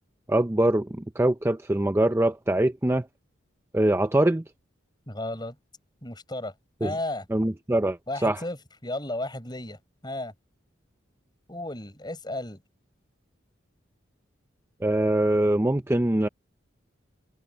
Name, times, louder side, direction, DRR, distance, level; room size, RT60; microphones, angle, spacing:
voice 1, 0.3-3.1 3.7-4.4 6.8-6.9 7.3-8.4 14.8-16.3, right 1 dB, 15° right, 0.5 m, -23 dB
voice 2, 5.1-5.5 6.0-6.5 6.8-7.3 8.1-10.3 11.5-12.6, left 1 dB, 20° left, 6.7 m, -34 dB
open air
head